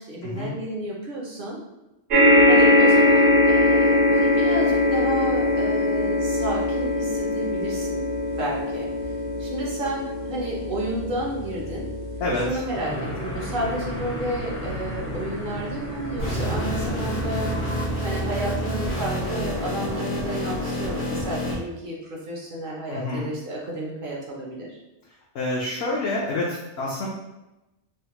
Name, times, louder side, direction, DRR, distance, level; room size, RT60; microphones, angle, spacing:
voice 1, 0.0-1.6 2.5-8.1 8.4-9.1 9.4-11.9 12.3-17.5 18.0-24.8, right 1 dB, 60° right, -3 dB, 0.7 m, -31 dB
sound 1, 2.1-16.7 17.4-17.5 17.8-17.9, left 1 dB, 80° right, 1.1 m, -22 dB
voice 2, 12.2-12.6 22.9-23.3 25.3-27.1, left 2 dB, 70° left, -4 dB, 0.8 m, -27 dB
sound 2, 12.7-17.9, equal, 20° left, 0.4 m, -33 dB
sound 3, 16.2-21.5, equal, 90° left, 1.4 m, -28 dB
3.2 x 2.0 x 2.9 m, 0.99 s
omnidirectional pair, 1.2 m